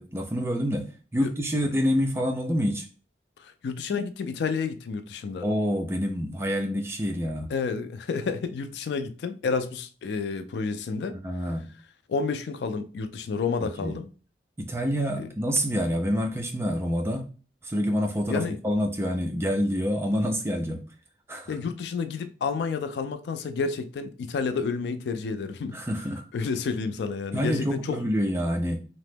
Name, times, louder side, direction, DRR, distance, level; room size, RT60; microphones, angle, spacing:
voice 1, 0.0-2.9 5.4-7.5 11.2-11.7 13.6-13.9 14.6-17.2 17.6-20.8 21.3-21.6 25.7-26.3 27.3-28.9, equal, 15° right, 0.4 m, -27 dB
voice 2, 3.4-5.5 7.5-11.2 12.1-14.1 15.2-15.3 18.3-18.6 21.5-25.8 26.3-28.0, left 5 dB, 75° left, 0.3 m, -30 dB
2.8 x 2.0 x 3.3 m
head